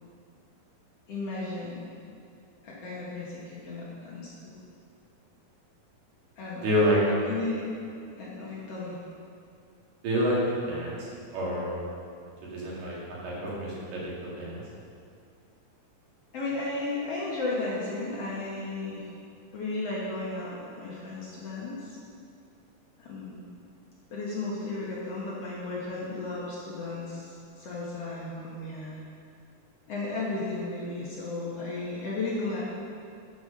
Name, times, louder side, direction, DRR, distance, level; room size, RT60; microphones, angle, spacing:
voice 1, 1.1-1.9 2.6-4.6 6.4-6.7 7.0-7.7 8.2-9.0 16.3-19.1 19.5-22.0 23.0-23.5 24.1-29.0 29.9-32.6, left 3 dB, 55° left, -5 dB, 2.1 m, -34 dB
voice 2, 6.6-7.0 10.0-11.1 11.3-11.8 12.5-13.0 13.2-14.6, equal, 75° right, -6 dB, 4.0 m, -27 dB
12.5 x 7.0 x 5.2 m, 2.4 s
omnidirectional pair, 4.0 m